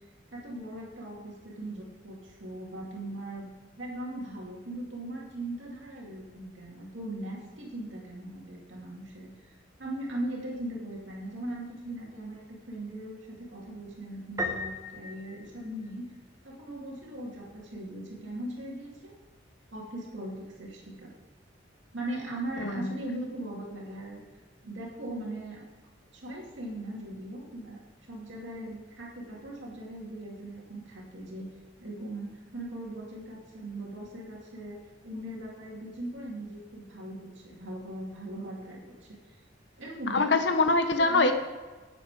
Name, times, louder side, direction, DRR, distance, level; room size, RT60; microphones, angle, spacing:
voice 1, 0.3-3.5 3.8-9.5 9.8-16.1 16.4-19.1 19.7-21.1 21.9-24.2 24.6-25.6 26.1-27.8 28.1-31.5 31.8-39.4 39.8-40.5 41.0-41.3, right 1 dB, 70° right, -3 dB, 2.4 m, -39 dB
Piano, 14.4-16.2, left 1 dB, 20° right, 0.9 m, -36 dB
voice 2, 22.6-23.0 40.1-41.3, left 3 dB, 60° left, 7 dB, 1.0 m, -24 dB
10.5 x 7.9 x 4.8 m, 1.3 s
head